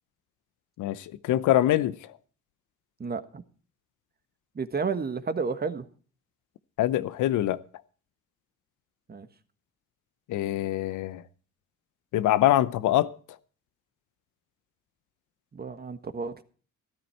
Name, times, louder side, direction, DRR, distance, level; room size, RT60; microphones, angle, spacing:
voice 1, 0.8-2.0 6.8-7.6 10.3-11.2 12.1-13.2, left 13 dB, 85° left, 0.8 m, -24 dB
voice 2, 3.0-3.4 4.5-5.9 9.1-9.3 15.5-16.4, right 5 dB, 30° right, 1.4 m, -31 dB
13.5 x 12.5 x 4.4 m
cardioid pair, 90°, 30 cm